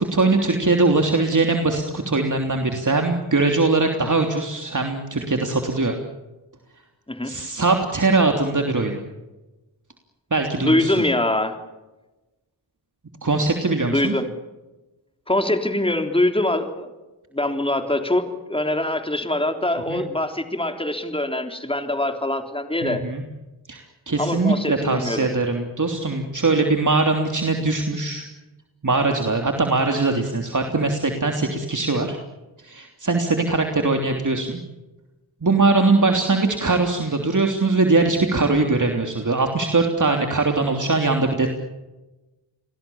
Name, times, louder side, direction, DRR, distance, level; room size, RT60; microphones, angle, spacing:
voice 1, 0.0-6.0 7.2-9.0 10.3-10.9 13.2-14.1 19.9-20.0 22.8-23.2 23.7-28.2 28.8-32.2 32.6-34.6 35.4-41.5, right 3 dB, 40° right, 3 dB, 3.2 m, -21 dB
voice 2, 10.5-11.6 13.9-14.3 15.3-16.9 17.3-23.0 24.2-25.3, left 1 dB, 10° left, 6 dB, 3.6 m, -23 dB
30.0 x 22.0 x 7.2 m, 1.1 s
cardioid pair, 60°, 46 cm